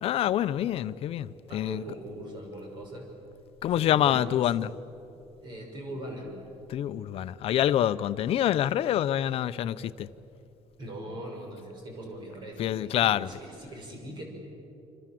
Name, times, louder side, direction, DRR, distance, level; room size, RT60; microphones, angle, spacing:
voice 1, 0.0-1.8 3.6-4.7 6.7-10.1 12.6-13.3, left 11 dB, 55° left, 0.7 m, -26 dB
voice 2, 1.5-3.1 3.7-4.4 5.4-6.3 10.8-14.2, right 1 dB, 40° right, 6.3 m, -40 dB
27.0 x 26.5 x 7.7 m
cardioid pair, 160°, 12 cm